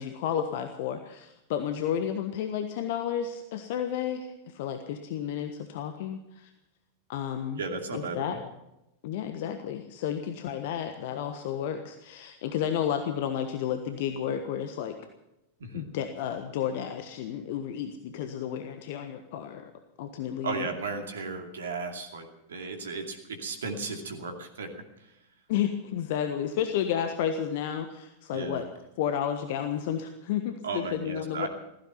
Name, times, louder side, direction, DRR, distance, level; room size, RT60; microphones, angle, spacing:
voice 1, 0.0-6.5 7.1-7.6 7.9-8.4 9.0-15.0 15.7-19.7 20.0-20.7 25.5-28.7 29.0-31.5, left 9 dB, 50° left, 7 dB, 1.3 m, -32 dB
voice 2, 7.6-8.4 15.6-15.8 20.4-24.7 28.3-28.6 30.6-31.5, right 4 dB, 65° right, 4 dB, 2.5 m, -35 dB
15.5 x 15.5 x 5.8 m, 0.88 s
figure-of-eight pair, 90°, 0 cm